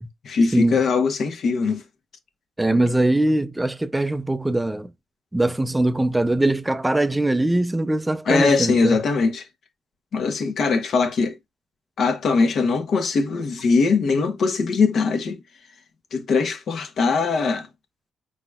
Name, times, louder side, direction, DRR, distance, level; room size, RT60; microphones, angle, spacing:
voice 1, 0.2-1.8 2.7-2.8 8.3-9.5 10.1-11.4 12.0-15.4 16.1-17.7, left 4 dB, 60° left, 1.1 m, -21 dB
voice 2, 2.6-4.9 5.3-9.0, right 1 dB, 10° right, 0.5 m, -21 dB
5.0 x 3.9 x 2.3 m
cardioid pair, 90°, 0 cm